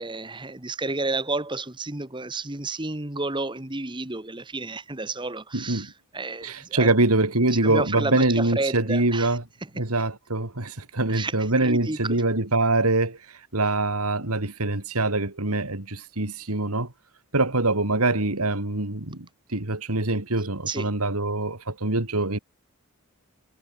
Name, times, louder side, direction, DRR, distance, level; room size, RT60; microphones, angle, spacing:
voice 1, 0.0-6.9 7.6-9.4 9.8-9.9 11.1-12.2 20.7-20.9, right 2 dB, 20° right, 1.5 m, -31 dB
voice 2, 5.5-5.9 6.4-9.4 9.7-13.2 13.5-16.9 17.3-22.4, right 2 dB, 85° right, 3.1 m, -24 dB
head